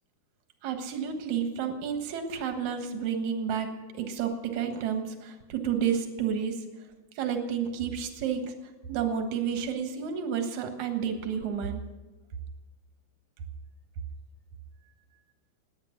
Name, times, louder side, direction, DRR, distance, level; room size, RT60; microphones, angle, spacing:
voice 1, 0.6-3.7 3.9-6.5 7.2-8.5 8.9-11.8, right 7 dB, 60° right, 6 dB, 2.1 m, -30 dB
19.5 x 9.5 x 6.5 m, 1.2 s
omnidirectional pair, 5.0 m